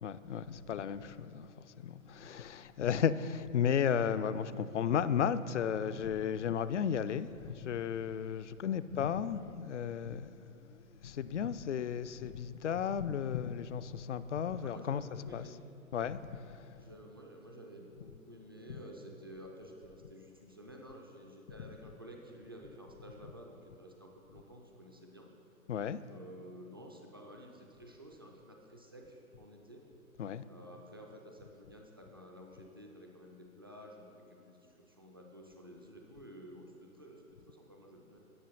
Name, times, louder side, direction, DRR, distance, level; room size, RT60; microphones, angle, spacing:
voice 1, 0.0-15.0 15.3-15.5 15.9-16.9 18.7-18.8 21.6-21.7 25.7-26.0 30.2-30.4, left 8 dB, 55° left, 0.5 m, -34 dB
voice 2, 14.6-15.6 16.8-25.3 26.1-29.8 30.5-38.2, equal, 20° right, 0.3 m, -52 dB
11.0 x 6.6 x 5.6 m
figure-of-eight pair, 120°, 44 cm